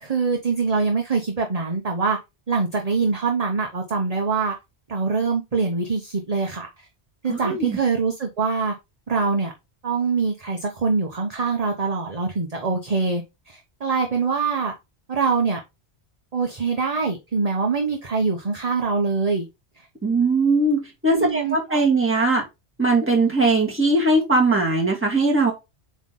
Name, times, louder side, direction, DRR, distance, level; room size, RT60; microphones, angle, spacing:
voice 1, 0.0-2.2 2.5-4.5 4.9-6.7 7.2-8.7 9.1-9.5 9.8-14.7 15.1-15.6 16.3-19.5 21.1-21.8, right 4 dB, 35° right, 1.1 m, -24 dB
voice 2, 7.3-7.8 20.0-22.4 22.8-25.5, right 2 dB, 10° right, 2.0 m, -20 dB
8.1 x 3.2 x 3.7 m
omnidirectional pair, 1.1 m